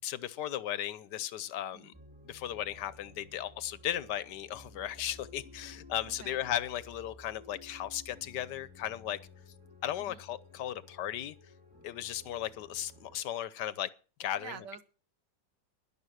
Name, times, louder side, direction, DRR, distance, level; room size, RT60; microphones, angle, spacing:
voice 1, 0.0-1.9 2.2-9.2 9.8-11.3 11.8-13.9 14.2-14.6, left 11 dB, 75° left, 1.4 m, -36 dB
sound 1, 1.9-13.2, left 2 dB, 5° right, 1.9 m, -54 dB
voice 2, 14.4-14.8, right 8 dB, 70° right, 1.7 m, -47 dB
11.0 x 11.0 x 6.4 m
omnidirectional pair, 1.9 m